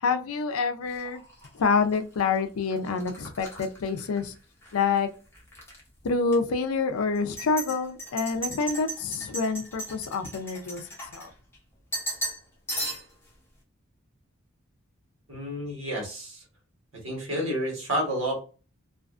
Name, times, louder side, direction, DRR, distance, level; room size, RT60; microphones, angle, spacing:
voice 1, 0.0-1.2 1.5-4.3 4.7-5.1 6.0-10.8 11.1-11.3, left 4 dB, 85° left, 7 dB, 0.4 m, -27 dB
sound 1, 0.9-4.8 5.1-5.8 6.3-6.4 7.1-11.6 11.9-12.4 12.7-13.3, right 1 dB, 10° left, 0.6 m, -37 dB
voice 2, 15.3-16.4 17.0-18.4, equal, 65° right, -2 dB, 1.3 m, -30 dB
2.4 x 2.4 x 2.4 m, 0.35 s
head